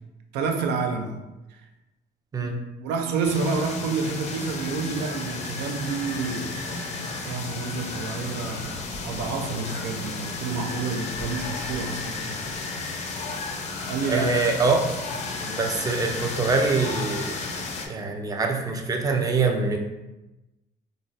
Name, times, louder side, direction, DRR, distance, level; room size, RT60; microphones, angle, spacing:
voice 1, 0.3-1.2 1.5-1.6 2.4-2.5 2.8-7.0 7.2-12.4 13.9-14.3, right 4 dB, 85° right, 0.4 m, -29 dB
sound 1, 3.2-17.9, left 3 dB, 40° left, 0.5 m, -33 dB
voice 2, 14.1-14.9 15.4-17.4 17.9-19.8, right 4 dB, 20° right, 0.4 m, -24 dB
3.7 x 2.0 x 2.5 m
cardioid pair, 110°, 17 cm